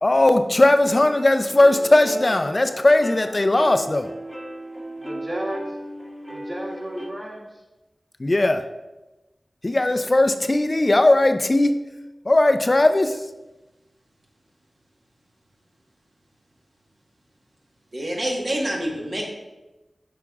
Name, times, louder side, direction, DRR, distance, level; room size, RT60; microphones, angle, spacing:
voice 1, 0.0-4.1 8.2-8.7 9.6-11.9 12.2-13.3, left 2 dB, 40° left, 9 dB, 0.3 m, -18 dB
sound 1, 0.8-7.1, right 1 dB, 15° right, 1.1 m, -37 dB
voice 2, 5.0-5.8 6.3-7.6, equal, 35° right, -4 dB, 1.7 m, -33 dB
voice 3, 17.9-19.3, right 1 dB, 70° right, -2 dB, 1.4 m, -26 dB
8.3 x 5.0 x 2.4 m, 1.1 s
cardioid pair, 45°, 0 cm